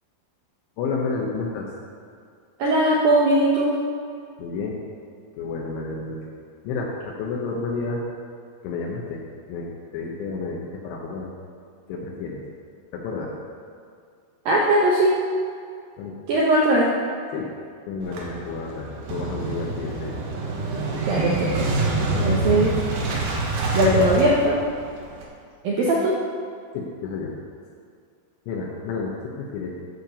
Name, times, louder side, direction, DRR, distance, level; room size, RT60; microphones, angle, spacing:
voice 1, 0.8-1.7 4.4-4.8 5.4-6.2 6.6-8.0 8.6-9.2 9.5-11.3 11.9-12.4 12.9-13.3 16.0-16.2 17.3-17.5 17.9-20.2 26.7-27.3 28.5-29.7, left 4 dB, 75° left, -2 dB, 3.1 m, -30 dB
voice 2, 2.6-3.7 14.5-15.2 16.3-16.9 21.1-21.5 22.2-22.7 23.7-24.6 25.6-26.1, right 1 dB, 85° right, -5 dB, 2.0 m, -19 dB
Motorcycle / Engine starting, 18.0-25.2, right 3 dB, 65° right, 2.8 m, -26 dB
13.0 x 4.5 x 6.9 m, 2.2 s
omnidirectional pair, 5.7 m